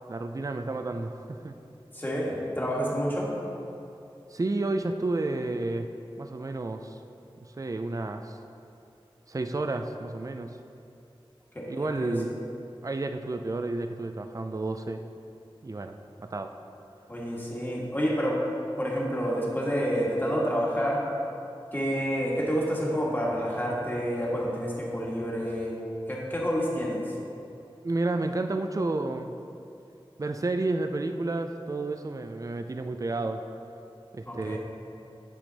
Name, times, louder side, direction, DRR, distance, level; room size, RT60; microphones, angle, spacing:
voice 1, 0.1-1.5 4.3-5.9 6.2-7.0 7.6-8.4 9.3-10.6 11.7-12.3 12.8-15.0 15.6-16.5 27.8-29.3 30.2-33.4 34.1-34.6, right 2 dB, 35° right, 7 dB, 0.4 m, -31 dB
voice 2, 1.9-3.3 11.5-12.4 17.1-18.4 18.8-21.0 21.7-25.8 26.1-27.1 34.3-34.6, equal, 20° left, -4 dB, 1.6 m, -29 dB
9.2 x 4.9 x 4.0 m, 2.7 s
wide cardioid pair, 55°, 9 cm